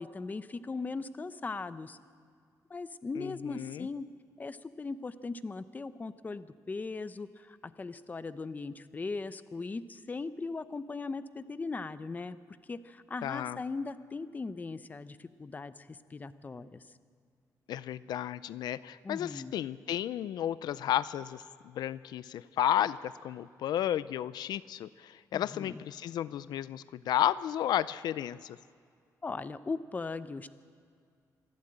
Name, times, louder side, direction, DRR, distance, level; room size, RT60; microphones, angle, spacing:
voice 1, 0.0-2.0 2.7-4.1 4.4-12.4 12.7-16.8 19.0-19.5 25.3-25.8 29.2-30.5, left 3 dB, 25° left, 13 dB, 0.7 m, -39 dB
voice 2, 3.2-3.9 13.2-13.6 17.7-28.6, left 11 dB, 85° left, 17 dB, 0.4 m, -33 dB
26.0 x 12.0 x 8.8 m, 2.2 s
cardioid pair, 125°, 7 cm